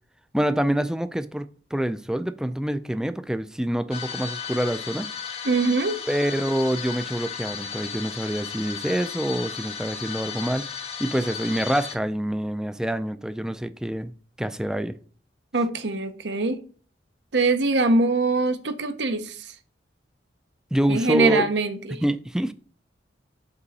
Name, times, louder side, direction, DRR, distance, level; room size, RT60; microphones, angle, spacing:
voice 1, 0.3-5.1 6.1-10.7 11.0-14.1 14.4-15.0 20.7-21.4 22.0-22.5, right 1 dB, 5° right, 0.3 m, -26 dB
sound 1, 3.9-12.0, left 7 dB, 35° left, 0.6 m, -35 dB
voice 2, 5.4-6.0 15.5-16.6 17.3-19.5 20.9-22.0, right 3 dB, 70° right, 0.8 m, -23 dB
5.9 x 5.4 x 4.1 m
head